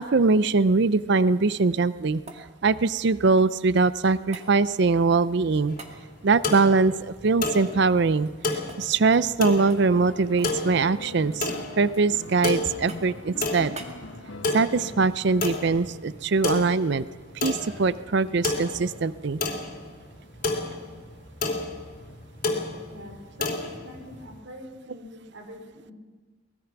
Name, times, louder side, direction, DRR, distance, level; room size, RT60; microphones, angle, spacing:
voice 1, 0.0-2.2 2.6-5.8 6.2-8.3 8.8-11.5 11.8-13.8 14.5-17.0 17.4-19.4, right 4 dB, 60° right, 16 dB, 0.5 m, -22 dB
sound 1, 1.9-3.7 4.3-4.5 5.8-6.0 6.5-8.4 8.7-8.8 9.1-9.4 9.7-10.6 10.9-11.5 11.9-12.4 12.9-13.2 13.7-14.0 15.4-15.6 18.0-18.1, right 3 dB, 35° right, 2.0 m, -46 dB
sound 2, 5.7-24.4, left 3 dB, 45° left, 2.9 m, -32 dB
sound 3, 9.5-16.0 17.5-17.6, left 2 dB, 80° left, 1.7 m, -43 dB
voice 2, 22.9-25.9, equal, 85° right, 3 dB, 4.2 m, -44 dB
23.5 x 19.5 x 6.0 m, 1.3 s
head